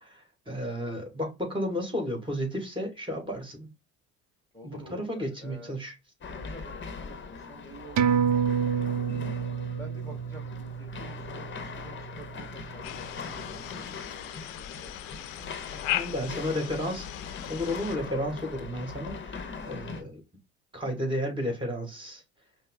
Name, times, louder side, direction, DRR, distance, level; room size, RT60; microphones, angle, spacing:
voice 1, 0.0-3.7 4.6-5.9 15.8-17.1 17.5-20.2 20.7-22.2, equal, 15° right, 2.3 m, -33 dB
voice 2, 4.5-5.7 6.3-9.2 9.7-16.8, right 1 dB, 5° left, 1.6 m, -50 dB
sound 1, 6.2-20.0, left 5 dB, 30° left, 0.9 m, -41 dB
sound 2, 8.0-12.9 13.3-13.4, right 7 dB, 45° right, 0.7 m, -29 dB
sound 3, 12.8-18.0, left 13 dB, 75° left, 0.6 m, -37 dB
5.4 x 2.1 x 3.7 m
hypercardioid pair, 65°, 40 cm